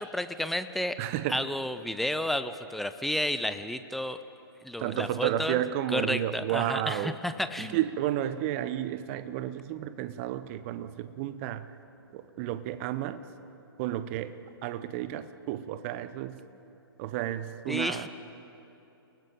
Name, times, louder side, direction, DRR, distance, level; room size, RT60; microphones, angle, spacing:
voice 1, 0.0-1.0 1.3-4.2 4.6-5.6 5.9-7.8 17.7-18.1, left 1 dB, ahead, 11 dB, 0.6 m, -31 dB
voice 2, 1.0-1.4 4.8-7.1 7.7-11.7 12.1-13.2 13.8-14.4 14.6-16.4 17.0-18.1, right 12 dB, 35° right, 13 dB, 0.9 m, -32 dB
30.0 x 18.5 x 5.4 m, 2.9 s
figure-of-eight pair, 120°, 13 cm